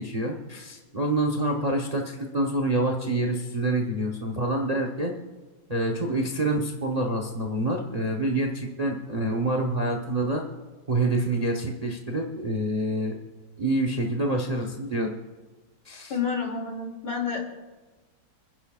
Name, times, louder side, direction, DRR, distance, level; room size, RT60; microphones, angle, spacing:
voice 1, 0.0-5.1 5.7-10.4 10.9-13.1 13.6-15.1 15.8-16.1, right 1 dB, 85° right, 2 dB, 0.3 m, -27 dB
voice 2, 16.1-17.4, left 5 dB, 50° left, 0 dB, 3.1 m, -29 dB
29.5 x 10.5 x 2.4 m, 1.2 s
omnidirectional pair, 2.4 m